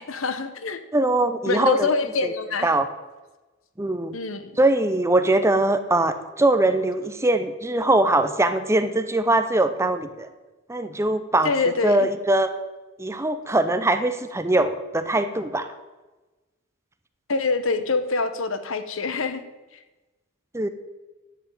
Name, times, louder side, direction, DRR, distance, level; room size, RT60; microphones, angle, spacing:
voice 1, 0.0-0.8 1.5-2.7 4.1-4.6 11.4-12.1 17.3-19.4, left 3 dB, 70° left, 10 dB, 1.1 m, -25 dB
voice 2, 0.9-1.9 2.2-2.3 2.6-2.9 3.8-4.2 4.6-10.3 10.7-11.5 11.8-12.5 13.0-15.7 20.5-20.7, right 2 dB, 15° right, 10 dB, 0.7 m, -22 dB
11.0 x 8.0 x 8.8 m, 1.2 s
head